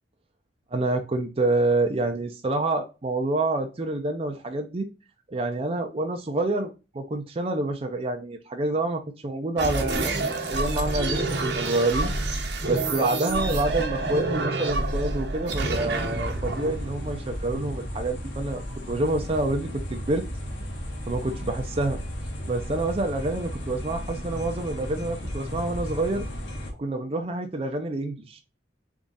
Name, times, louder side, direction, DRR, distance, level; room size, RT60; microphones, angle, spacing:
voice 1, 0.7-4.9 5.3-12.1 12.6-20.2 21.1-22.0 22.5-26.2 26.8-28.4, right 2 dB, 30° right, 4 dB, 0.5 m, -27 dB
sound 1, 9.6-17.8, right 2 dB, 65° right, 1.1 m, -28 dB
sound 2, 15.6-26.7, equal, 85° left, 1.4 m, -35 dB
3.6 x 3.6 x 4.0 m, 0.29 s
head